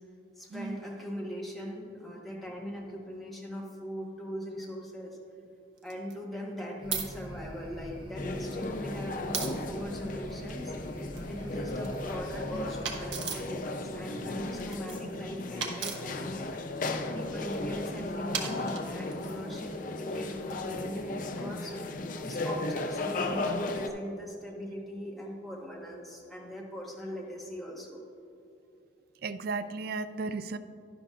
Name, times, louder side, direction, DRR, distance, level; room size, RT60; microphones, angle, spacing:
voice 1, 0.4-5.2 5.8-10.7 11.3-16.5 17.1-21.8 22.2-28.0, equal, ahead, -4 dB, 1.2 m, -40 dB
sound 1, 4.6-4.7 5.8-6.1 6.9-7.1 8.2-8.5 9.3-9.5 11.0-11.9 12.8-13.5 14.6-15.1 15.6-16.0 17.3-17.6 18.3-19.2, right 6 dB, 80° right, 1.0 m, -36 dB
sound 2, 6.8-13.2, equal, 25° right, 0.9 m, -44 dB
sound 3, 8.2-23.9, left 2 dB, 40° left, 0.5 m, -36 dB
voice 2, 29.2-30.6, right 4 dB, 50° right, 12 dB, 0.3 m, -34 dB
11.0 x 11.0 x 2.4 m, 2.7 s
head